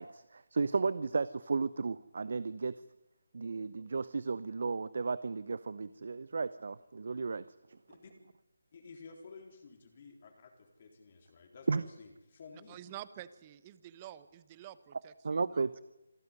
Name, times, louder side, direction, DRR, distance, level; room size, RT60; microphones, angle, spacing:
voice 1, 0.0-2.7 3.3-7.4 11.7-11.8 15.2-15.8, right 4 dB, 60° right, 16 dB, 0.8 m, -34 dB
voice 2, 8.7-12.8, left 4 dB, 40° left, 3 dB, 3.8 m, -53 dB
voice 3, 12.7-15.8, right 12 dB, 25° right, 15 dB, 1.1 m, -49 dB
26.5 x 14.5 x 9.8 m, 0.96 s
figure-of-eight pair, 155°, 0 cm